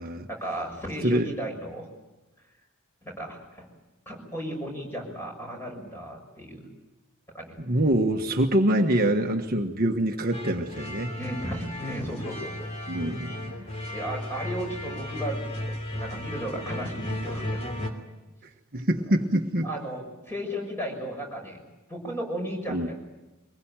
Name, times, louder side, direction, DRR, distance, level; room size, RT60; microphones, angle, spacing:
voice 1, 0.3-1.9 3.0-3.7 4.0-6.7 7.3-7.6 11.1-12.7 13.0-13.3 13.6-18.0 19.6-21.6 21.9-23.0, equal, 10° left, 1 dB, 6.6 m, -35 dB
voice 2, 7.6-11.1 12.9-13.7 18.7-19.7 22.7-22.9, right 1 dB, 45° right, 3 dB, 1.4 m, -25 dB
sound 1, 10.3-17.9, left 1 dB, 30° left, 3.0 m, -35 dB
24.0 x 21.0 x 9.0 m, 1.1 s
head